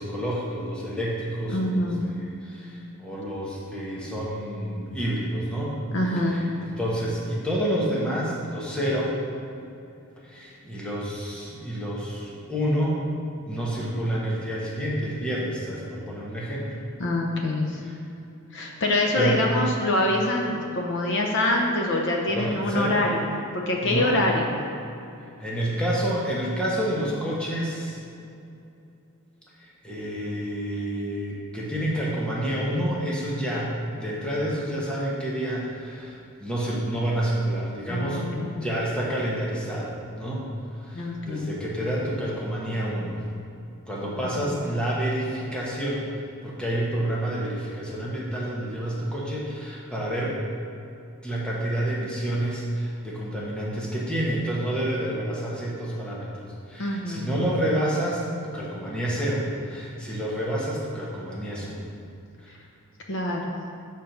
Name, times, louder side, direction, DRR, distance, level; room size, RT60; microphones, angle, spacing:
voice 1, 0.0-5.7 6.1-9.2 10.2-13.0 13.5-16.7 17.8-17.9 19.2-19.4 22.3-23.0 23.8-24.2 25.4-28.0 29.6-38.2 38.6-40.4 40.8-43.2 43.9-50.3 51.2-61.9 62.4-62.5, right 1 dB, 5° left, -6 dB, 1.1 m, -29 dB
voice 2, 1.5-2.1 5.9-6.4 17.0-17.8 18.5-23.2 23.5-24.5 37.9-38.6 40.9-41.5 44.2-44.6 56.8-57.3 63.1-63.5, left 1 dB, 55° left, 0 dB, 0.7 m, -25 dB
6.3 x 4.4 x 5.3 m, 2.7 s
head